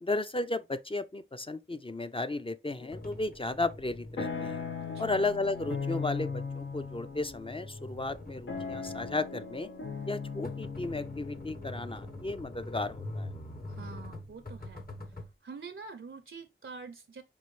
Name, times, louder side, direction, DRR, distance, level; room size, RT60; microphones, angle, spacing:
voice 1, 0.0-4.6 5.0-9.7 10.1-13.3, left 2 dB, 25° left, 0.4 m, -34 dB
sound 1, 2.8-3.4 3.7-13.7, left 5 dB, 85° left, 0.7 m, -39 dB
sound 2, 2.9-15.3, left 1 dB, 50° left, 1.0 m, -45 dB
voice 2, 13.7-14.8 15.4-17.2, right 5 dB, 80° right, 0.5 m, -46 dB
5.4 x 2.6 x 3.1 m
wide cardioid pair, 50°, 20 cm